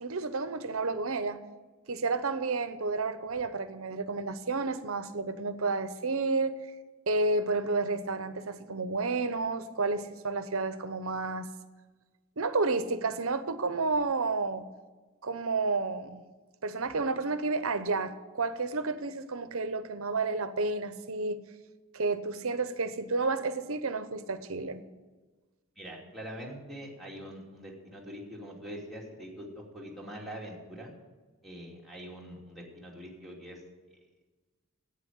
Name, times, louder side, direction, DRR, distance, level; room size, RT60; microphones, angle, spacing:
voice 1, 0.0-1.4 1.9-6.6 7.1-11.5 12.4-14.7 15.2-16.2 16.6-21.4 21.9-24.8, right 3 dB, 70° right, 0.9 m, -31 dB
voice 2, 25.8-30.9 31.4-33.6, equal, ahead, 2.8 m, -43 dB
11.0 x 9.0 x 9.4 m
head